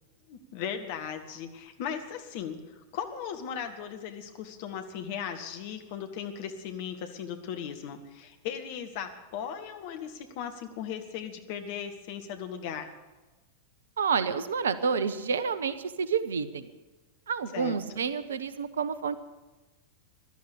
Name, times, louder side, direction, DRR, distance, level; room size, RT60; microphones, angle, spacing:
voice 1, 0.3-12.9 17.5-17.8, left 8 dB, 50° left, 6 dB, 1.7 m, -37 dB
voice 2, 14.0-16.7 17.3-19.2, right 6 dB, 65° right, 14 dB, 0.9 m, -29 dB
16.0 x 12.5 x 6.9 m, 1.2 s
figure-of-eight pair, 90°, 0 cm